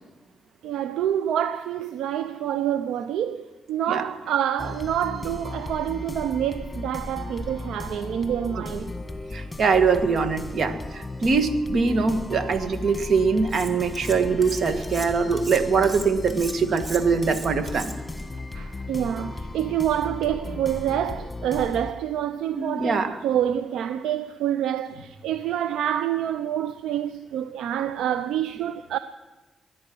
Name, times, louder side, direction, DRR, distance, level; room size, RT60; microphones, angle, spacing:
voice 1, 0.6-8.9 18.5-29.0, right 10 dB, 80° right, 0.6 m, -27 dB
sound 1, 4.6-21.9, left 2 dB, 20° left, 1.7 m, -36 dB
voice 2, 9.3-17.9 22.5-23.2, right 5 dB, 60° right, 1.8 m, -23 dB
Cutlery silverware, 13.5-14.2 14.4-18.2, right 1 dB, 25° right, 3.4 m, -38 dB
20.5 x 11.0 x 6.2 m
supercardioid pair, 50°, 0 cm